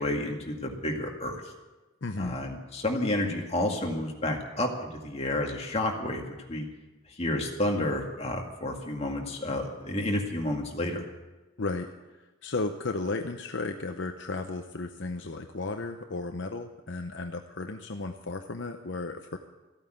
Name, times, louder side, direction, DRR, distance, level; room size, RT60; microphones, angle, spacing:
voice 1, 0.0-1.4 2.2-6.2 6.5-6.7 7.2-11.0, left 1 dB, 30° left, 1 dB, 2.1 m, -30 dB
voice 2, 2.0-2.4 11.6-11.9 12.4-19.4, left 3 dB, 60° left, 5 dB, 0.8 m, -34 dB
14.5 x 9.0 x 9.1 m, 1.1 s
head